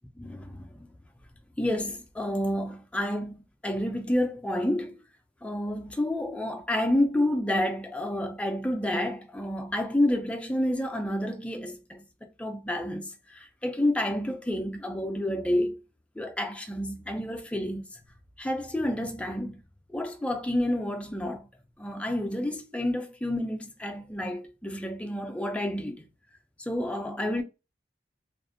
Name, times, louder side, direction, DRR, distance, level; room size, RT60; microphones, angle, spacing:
voice 1, 0.2-0.9 1.6-5.0 5.4-15.8 16.2-18.0 18.4-19.6 19.9-21.5 21.8-26.1 26.6-27.4, left 1 dB, 5° left, 0.3 m, -29 dB
2.4 x 2.1 x 2.5 m
head